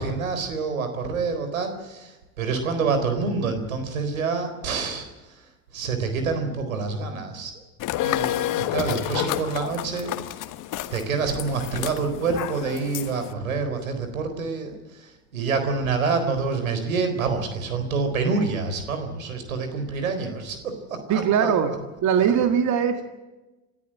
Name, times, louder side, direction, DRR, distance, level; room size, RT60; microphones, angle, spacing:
voice 1, 0.0-5.1 5.4-5.5 5.7-7.5 8.0-10.1 10.9-21.5, right 4 dB, 90° right, 8 dB, 4.2 m, -27 dB
sound 1, 7.8-13.3, left 13 dB, 50° left, 1.3 m, -30 dB
voice 2, 21.1-21.7 22.0-23.0, right 8 dB, 45° right, 7 dB, 2.2 m, -20 dB
27.5 x 13.5 x 8.8 m, 1.1 s
hypercardioid pair, 85°, 40 cm